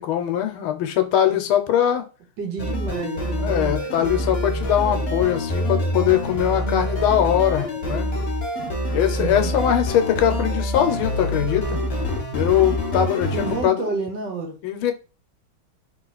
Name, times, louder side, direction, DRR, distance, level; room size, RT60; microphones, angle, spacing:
voice 1, 0.0-2.1 3.4-8.1 8.9-11.8 12.3-13.9 14.6-14.9, left 11 dB, 85° left, 1.5 m, -21 dB
voice 2, 2.4-4.0 9.1-9.6 13.3-14.6, right 4 dB, 60° right, 1.4 m, -30 dB
sound 1, 2.6-13.6, equal, 55° left, 0.6 m, -26 dB
3.5 x 2.9 x 3.9 m
omnidirectional pair, 2.3 m